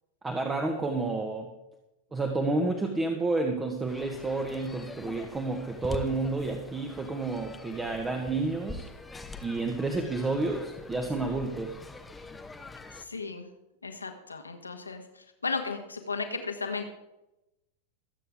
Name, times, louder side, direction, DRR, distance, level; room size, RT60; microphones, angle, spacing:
voice 1, 0.2-1.5 2.1-8.9 9.4-11.8, right 3 dB, 15° right, 3 dB, 1.5 m, -30 dB
sound 1, 3.9-13.0, left 2 dB, 10° left, 1.2 m, -44 dB
voice 2, 12.9-13.5 13.8-16.9, left 4 dB, 80° left, 5 dB, 1.7 m, -35 dB
23.0 x 8.5 x 3.7 m, 0.94 s
figure-of-eight pair, 90°, 0 cm